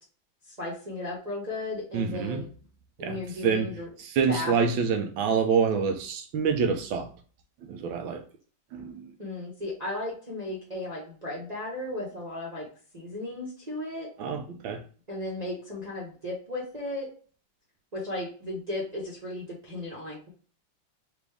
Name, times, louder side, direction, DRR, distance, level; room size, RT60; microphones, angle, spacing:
voice 1, 0.6-2.5 3.0-3.9 4.3-4.6 9.2-12.7 12.9-14.1 15.1-17.1 17.9-20.3, left 2 dB, 30° right, 0.9 m, -35 dB
voice 2, 1.9-2.4 3.0-7.1 7.6-8.2 8.7-9.1 14.2-14.8, right 6 dB, 85° right, 1.5 m, -27 dB
5.0 x 2.6 x 3.3 m
omnidirectional pair, 2.1 m